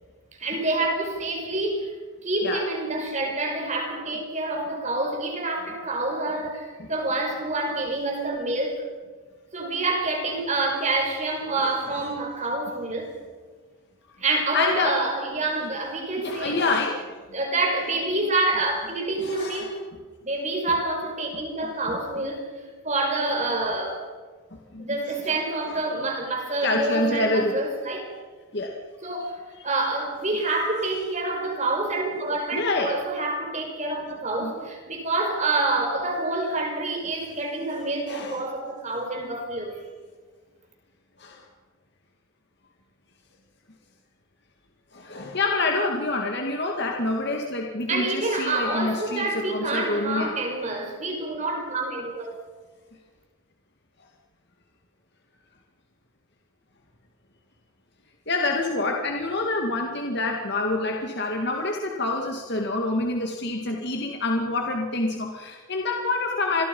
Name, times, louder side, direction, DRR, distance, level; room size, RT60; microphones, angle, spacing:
voice 1, 0.4-1.9 2.2-8.8 9.5-13.1 14.2-16.6 17.3-19.8 20.2-22.5 22.8-24.0 24.8-28.1 29.0-29.4 29.6-39.8 47.9-52.3, right 2 dB, 30° right, 2 dB, 5.5 m, -27 dB
voice 2, 14.5-15.0 15.6-15.7 16.2-17.1 19.2-19.7 21.6-22.0 24.7-25.3 25.7-25.8 26.6-27.6 28.5-28.7 29.6-29.9 32.5-33.0 34.1-34.5 38.1-38.4 41.2-41.4 44.9-50.3 58.3-66.7, left 2 dB, 50° left, 1 dB, 2.2 m, -27 dB
28.0 x 21.5 x 5.5 m, 1.4 s
head